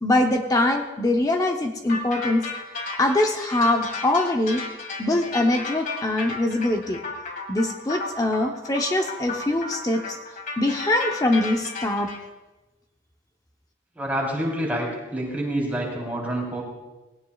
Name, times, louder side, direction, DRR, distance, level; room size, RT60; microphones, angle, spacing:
voice 1, 0.0-2.4 3.0-4.6 5.0-7.0 7.5-10.2 10.6-12.1, left 1 dB, 20° left, 3 dB, 0.8 m, -23 dB
sound 1, 1.9-12.2, left 3 dB, 45° left, 1.8 m, -34 dB
voice 2, 14.0-16.6, right 1 dB, 10° right, -4 dB, 3.5 m, -27 dB
18.5 x 17.0 x 2.4 m, 1.1 s
head